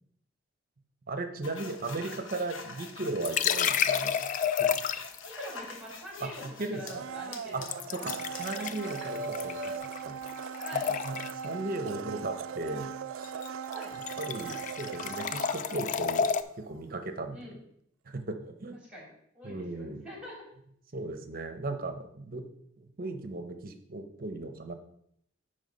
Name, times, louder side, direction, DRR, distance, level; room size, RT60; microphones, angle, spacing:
voice 1, 1.1-4.2 4.6-4.8 6.2-7.0 7.5-7.6 7.9-8.1 8.4-9.7 10.0-10.2 10.7-13.3 14.2-16.3 16.6-17.6 18.1-18.8 19.4-20.0 20.9-22.5 22.8-24.7, right 2 dB, 45° right, 7 dB, 0.7 m, -37 dB
sound 1, 1.4-6.9 7.3-9.8, left 2 dB, 80° left, 1.1 m, -43 dB
sound 2, 3.2-5.3 7.7-10.0 10.3-11.5 13.2-13.5 13.7-16.4, left 7 dB, 40° left, 0.3 m, -30 dB
voice 2, 5.3-8.1 8.5-8.7 10.6-10.9 13.7-14.0 17.3-17.6 18.9-20.4, equal, 5° right, -4 dB, 3.0 m, -44 dB
Domestic sounds home sounds, 6.8-16.8 17.1-17.2, right 7 dB, 80° right, 0.3 m, -40 dB
9.0 x 3.4 x 5.5 m, 0.71 s
head